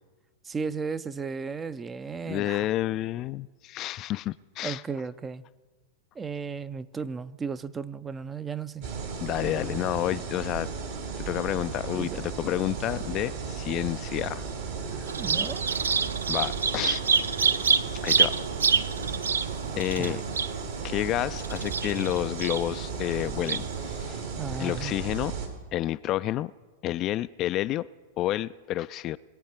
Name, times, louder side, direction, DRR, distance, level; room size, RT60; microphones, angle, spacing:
voice 1, 0.4-2.7 4.6-5.4 6.1-8.9 11.9-12.2 15.2-15.6 20.0-20.2 24.4-24.9, right 5 dB, 20° right, 15 dB, 0.5 m, -35 dB
voice 2, 2.3-4.8 9.2-10.8 11.2-14.5 14.9-15.1 16.3-17.0 18.0-18.4 19.8-20.2 20.8-24.2 24.6-25.3 25.7-26.5 26.8-27.9 28.2-29.2, left 14 dB, 40° left, 15 dB, 0.3 m, -30 dB
sound 1, 8.8-25.5, right 5 dB, 65° right, 2.7 m, -35 dB
Bird vocalization bird call bird song, 15.1-24.0, right 6 dB, 80° right, 0.4 m, -28 dB
21.5 x 8.6 x 4.5 m, 1.4 s
hypercardioid pair, 100°, 0 cm